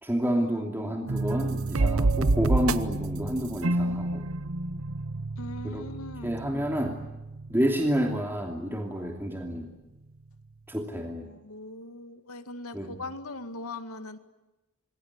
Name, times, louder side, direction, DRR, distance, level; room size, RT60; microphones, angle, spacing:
voice 1, 0.0-4.2 5.6-5.8 6.2-7.0 7.5-9.7 10.7-11.3 12.7-12.9, equal, 10° right, 2 dB, 2.8 m, -29 dB
voice 2, 0.8-1.3 5.4-6.4 7.6-7.7 11.0-14.2, left 2 dB, 85° left, 9 dB, 2.1 m, -41 dB
sound 1, 1.1-7.9, right 2 dB, 70° right, 1.0 m, -29 dB
26.5 x 22.5 x 9.7 m, 1.1 s
head